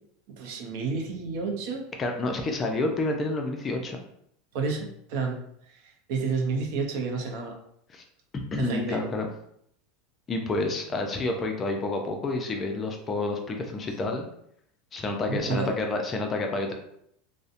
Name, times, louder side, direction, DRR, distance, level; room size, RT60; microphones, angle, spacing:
voice 1, 0.4-1.8 4.5-5.4 5.7-7.6 8.6-9.0 15.3-15.7, right 4 dB, 65° right, 1 dB, 0.6 m, -30 dB
voice 2, 2.0-4.0 7.9-8.0 8.3-9.3 10.3-14.3 14.9-16.7, left 2 dB, 25° left, 3 dB, 0.4 m, -29 dB
2.7 x 2.0 x 2.5 m, 0.72 s
supercardioid pair, 120°, 0 cm